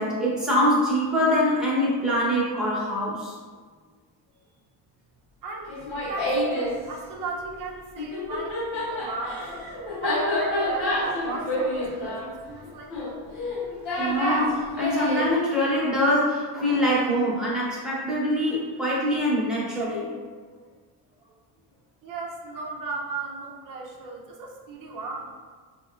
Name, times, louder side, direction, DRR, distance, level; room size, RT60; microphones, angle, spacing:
voice 1, 0.0-3.3 9.0-9.1 14.0-20.1, equal, ahead, -8 dB, 0.9 m, -24 dB
Laughter, 5.7-6.7 8.0-15.3, left 1 dB, 70° left, 1.4 m, -28 dB
voice 2, 6.0-9.5 10.0-13.3 22.0-25.3, right 3 dB, 50° right, -1 dB, 0.6 m, -36 dB
4.2 x 2.9 x 2.4 m, 1.5 s
cardioid pair, 140°, 42 cm